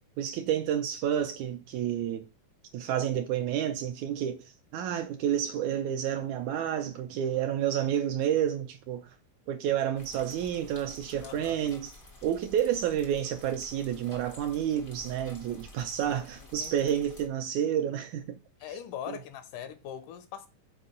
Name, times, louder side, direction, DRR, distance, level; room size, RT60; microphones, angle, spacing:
voice 1, 0.2-2.3 2.7-9.1 9.5-11.9 12.2-18.4 19.1-19.2, right 10 dB, 80° right, 1.8 m, -30 dB
sound 1, 9.9-17.3, left 2 dB, 65° left, 0.5 m, -51 dB
voice 2, 11.2-11.6 16.0-16.9 18.6-20.5, left 9 dB, 80° left, 2.2 m, -42 dB
5.7 x 4.5 x 6.3 m
omnidirectional pair, 3.8 m